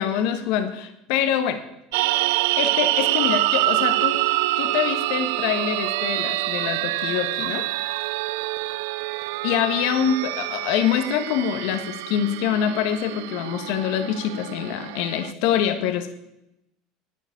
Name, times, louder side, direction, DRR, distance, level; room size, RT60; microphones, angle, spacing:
voice 1, 0.0-1.6 2.5-4.2 4.6-7.7 9.4-16.1, left 9 dB, 70° left, 8 dB, 1.5 m, -25 dB
sound 1, 1.9-15.3, right 19 dB, 80° right, 0.4 m, -26 dB
10.0 x 9.8 x 8.5 m, 0.84 s
supercardioid pair, 100°, 0 cm